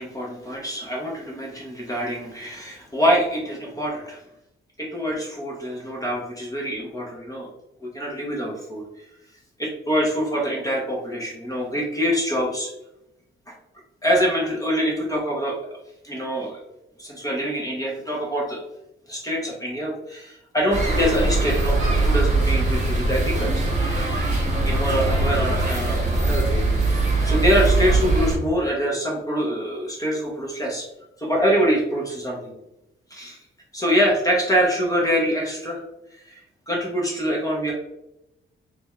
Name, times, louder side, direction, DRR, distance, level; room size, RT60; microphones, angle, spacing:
voice 1, 0.0-4.2 4.8-7.5 7.8-9.1 9.6-12.7 14.0-15.6 16.0-16.6 17.0-18.6 19.1-23.7 24.1-24.4 24.6-26.9 27.2-30.9 31.2-32.5 33.1-33.4 33.7-35.8 36.2-36.4 36.7-37.7, equal, 15° left, -3 dB, 0.8 m, -25 dB
sound 1, 20.7-28.4, right 2 dB, 35° right, 1.0 m, -21 dB
3.4 x 3.2 x 3.3 m, 0.86 s
wide cardioid pair, 165°, 21 cm